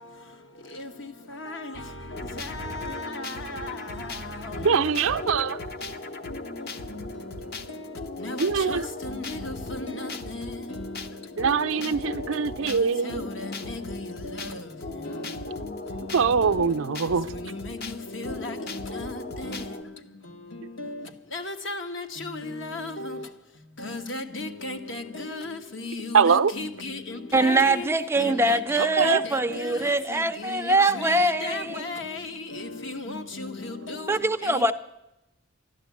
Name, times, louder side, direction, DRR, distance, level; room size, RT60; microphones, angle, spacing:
voice 1, 1.4-1.7 2.4-3.1 3.6-3.7 8.2-10.1 10.7-10.8 13.1-14.0 15.1-15.2 17.4-17.8 18.1-19.1 19.4-19.6 20.8-21.0 21.3-23.2 23.8-27.9 28.2-29.1 29.5-29.6 30.4-30.7 30.9-32.3 32.5-34.0 34.5-34.7, left 2 dB, 60° left, 1.4 m, -35 dB
sound 1, 2.1-19.8, left 2 dB, 45° left, 0.9 m, -37 dB
voice 2, 4.6-5.6 8.4-8.9 11.4-13.3 16.0-17.3 26.1-26.5 28.8-29.2, right 6 dB, 70° right, 0.5 m, -23 dB
voice 3, 27.3-31.8 34.1-34.7, right 2 dB, 10° right, 0.4 m, -23 dB
13.0 x 11.5 x 8.4 m
head